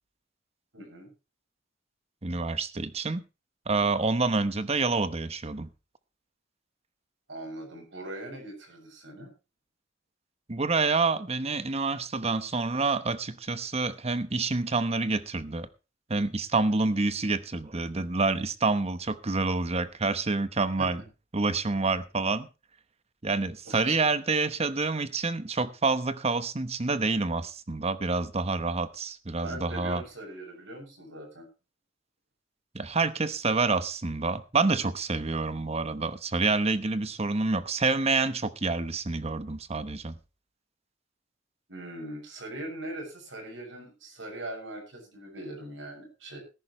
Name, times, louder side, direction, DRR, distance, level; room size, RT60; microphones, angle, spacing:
voice 1, 0.7-1.1 7.3-9.3 20.8-20.9 23.7-24.0 29.4-31.5 41.7-46.4, right 1 dB, 75° right, 1 dB, 6.9 m, -41 dB
voice 2, 2.2-3.2 3.7-5.7 10.5-15.7 16.1-21.0 21.3-22.5 23.2-30.0 32.7-40.2, right 3 dB, 35° right, 12 dB, 0.9 m, -28 dB
18.5 x 10.5 x 3.2 m, 0.30 s
head